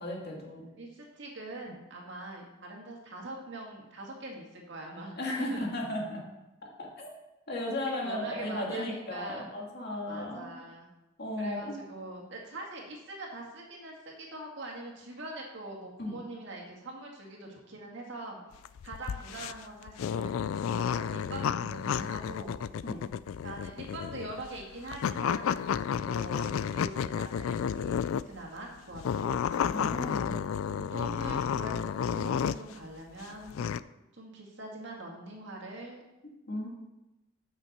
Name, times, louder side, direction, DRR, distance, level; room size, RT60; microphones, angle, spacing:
voice 1, 0.0-0.7 5.2-6.2 6.8-7.1 7.5-10.5 11.2-11.8 16.0-16.2 22.8-23.0 29.7-30.6 36.5-36.7, left 1 dB, 50° left, -2 dB, 2.3 m, -35 dB
voice 2, 0.7-5.7 7.9-9.5 10.1-10.9 11.4-18.4 18.8-20.3 20.7-22.6 23.4-29.4 30.4-33.6 34.1-36.0, right 2 dB, 60° right, -1 dB, 2.1 m, -43 dB
sound 1, 18.5-28.4 28.9-32.8 33.2-33.8, left 8 dB, 80° left, 0.3 m, -31 dB
8.0 x 6.2 x 6.7 m, 1.0 s
head